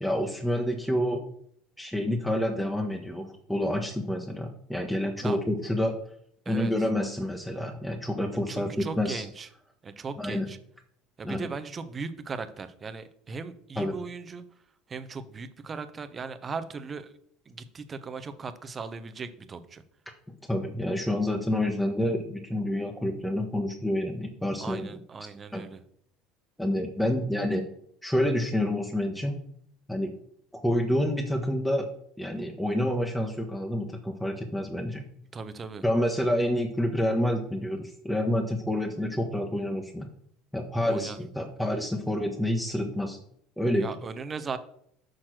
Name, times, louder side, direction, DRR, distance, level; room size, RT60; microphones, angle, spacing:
voice 1, 0.0-1.2 1.8-6.0 6.5-9.2 10.2-10.5 11.2-11.5 13.7-13.9 20.5-24.9 25.5-25.6 26.6-27.6 28.0-29.4 29.9-30.1 30.5-31.9 32.2-35.0 35.8-40.1 40.5-43.2 43.6-43.9, left 1 dB, 5° left, 1 dB, 1.0 m, -28 dB
voice 2, 8.5-9.5 9.8-10.6 11.2-14.4 14.9-17.1 17.5-19.8 24.6-25.8 35.3-35.8 40.8-41.2 43.8-44.6, right 4 dB, 30° right, 11 dB, 0.8 m, -38 dB
6.3 x 4.3 x 6.2 m, 0.67 s
hypercardioid pair, 70°, 0 cm